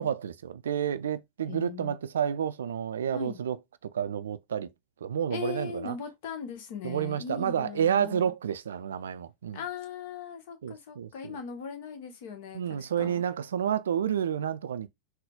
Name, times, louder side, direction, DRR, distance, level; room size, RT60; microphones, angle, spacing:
voice 1, 0.0-3.6 3.8-4.7 5.0-6.0 6.8-9.6 10.6-11.4 12.5-14.9, right 8 dB, 65° right, 0.3 m, -30 dB
voice 2, 1.5-1.9 3.1-3.4 5.3-8.3 9.5-13.2, left 6 dB, 50° left, 1.0 m, -39 dB
3.8 x 2.1 x 3.5 m
figure-of-eight pair, 90°, 0 cm